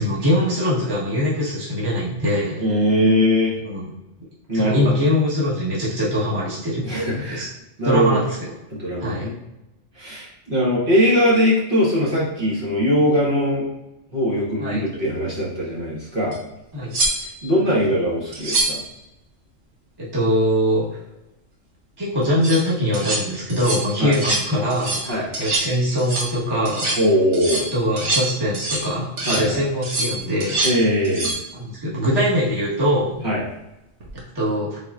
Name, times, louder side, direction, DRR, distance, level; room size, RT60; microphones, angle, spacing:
voice 1, 0.0-2.6 3.6-3.9 4.5-6.8 7.3-7.4 7.8-8.4 9.0-9.3 14.6-14.8 16.7-17.0 20.0-20.8 22.0-26.9 27.7-30.6 31.5-33.2 34.3-34.8, equal, 20° right, -7 dB, 1.2 m, -22 dB
voice 2, 2.6-3.5 4.5-5.0 6.8-7.5 7.8-8.2 8.7-9.4 9.9-13.7 14.1-16.4 17.2-18.8 24.0-24.2 25.1-25.3 27.0-27.7 29.2-29.6 30.6-31.3 33.2-33.5, equal, 45° right, -7 dB, 1.3 m, -21 dB
sound 1, 16.3-16.4 16.9-17.5 18.3-18.9 22.2-22.6 22.9-23.2 23.5-23.9 24.1-24.5 24.7-25.1 25.3-25.7 26.0-26.3 26.7-27.0 27.3-28.9 29.2-29.5 29.8-30.8 31.0-31.4 34.0-34.2, right 2 dB, 65° right, 1.2 m, -25 dB
4.2 x 4.1 x 2.4 m, 0.94 s
omnidirectional pair, 1.3 m